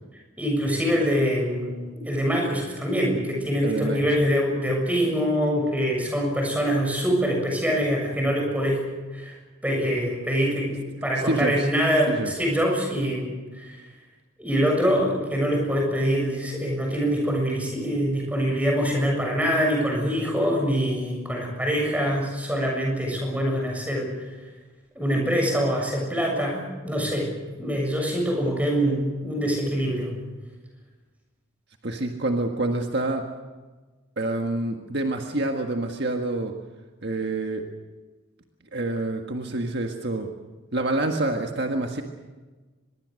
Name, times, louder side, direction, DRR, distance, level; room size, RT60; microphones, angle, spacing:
voice 1, 0.4-8.8 9.1-9.4 9.6-13.8 14.4-24.1 25.0-27.3 27.6-30.1, equal, 5° right, 0 dB, 7.0 m, -24 dB
voice 2, 3.6-4.0 11.2-11.7 12.1-12.3 31.8-33.2 34.2-36.5 37.0-37.6 38.7-40.3 40.7-42.0, right 2 dB, 55° right, 3 dB, 1.6 m, -27 dB
24.5 x 22.0 x 6.5 m, 1.3 s
head